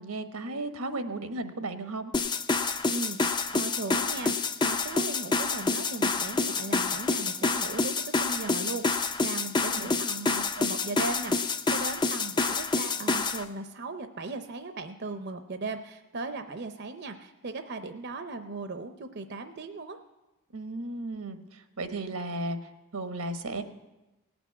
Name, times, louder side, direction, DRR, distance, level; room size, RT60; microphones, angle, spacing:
voice 1, 0.0-2.1 9.7-9.9 20.5-22.6 22.9-23.6, right 2 dB, 85° right, 8 dB, 1.1 m, -35 dB
sound 1, 2.1-13.4, left 4 dB, 20° left, 0.4 m, -28 dB
voice 2, 2.9-20.0, right 3 dB, 50° right, 8 dB, 0.6 m, -38 dB
18.0 x 6.1 x 9.3 m, 1.0 s
head